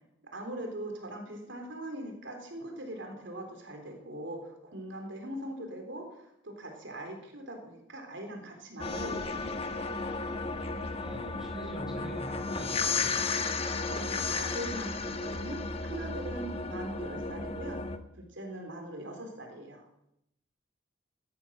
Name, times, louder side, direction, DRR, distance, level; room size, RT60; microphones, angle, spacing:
voice 1, 0.2-9.8 13.6-17.8 18.2-19.8, right 1 dB, 70° right, 3 dB, 3.5 m, -41 dB
sound 1, 8.8-18.0, left 4 dB, 30° left, 1.2 m, -34 dB
voice 2, 10.8-13.1, right 1 dB, 5° right, -1 dB, 5.8 m, -43 dB
16.5 x 13.0 x 6.4 m, 0.79 s
head